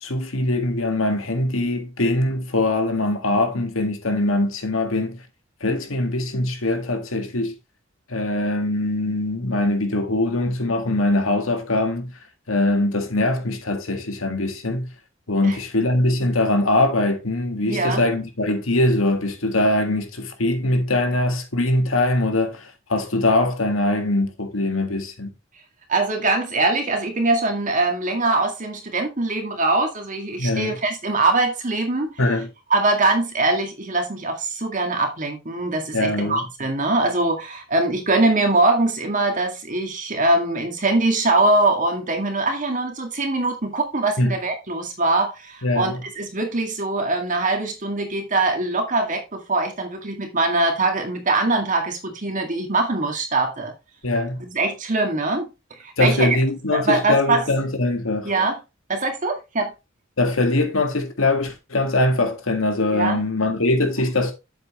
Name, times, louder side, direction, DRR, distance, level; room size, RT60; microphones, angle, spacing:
voice 1, 0.0-5.2 5.6-7.5 8.1-12.1 12.5-14.9 15.3-25.3 30.4-30.8 32.2-32.5 35.9-36.4 44.2-44.4 45.6-46.0 54.0-54.4 56.0-58.3 60.2-64.3, left 2 dB, 90° left, 1.8 m, -22 dB
voice 2, 17.7-18.0 25.9-32.1 32.7-53.7 54.4-55.5 55.8-56.4 56.7-57.4 58.2-58.6 58.9-59.7 62.9-63.2, right 2 dB, 40° right, 2.1 m, -22 dB
7.8 x 7.7 x 3.0 m
head